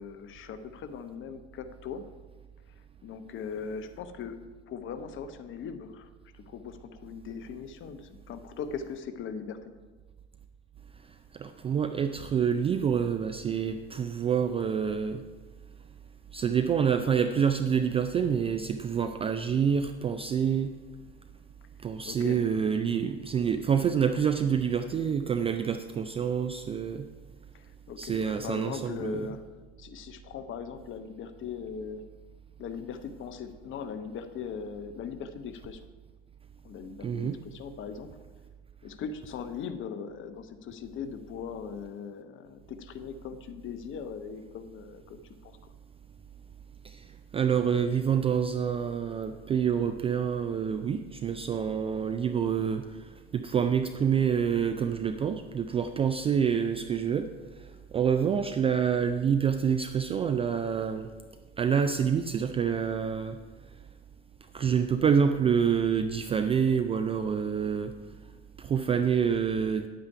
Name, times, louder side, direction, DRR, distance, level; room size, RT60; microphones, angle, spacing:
voice 1, 0.0-2.0 3.0-4.4 4.7-9.6 22.0-22.4 27.5-29.4 29.8-32.0 32.6-35.8 36.6-38.1 38.8-45.6, left 6 dB, 35° left, 9 dB, 0.9 m, -39 dB
voice 2, 11.3-15.2 16.3-20.7 21.8-27.1 28.0-29.3 37.0-37.4 46.8-47.0 47.3-52.9 53.3-57.3 57.9-61.1 61.6-63.4 64.5-67.9 68.6-69.9, right 7 dB, 15° right, 8 dB, 0.3 m, -27 dB
9.8 x 8.6 x 4.8 m, 1.4 s
figure-of-eight pair, 70°, 35 cm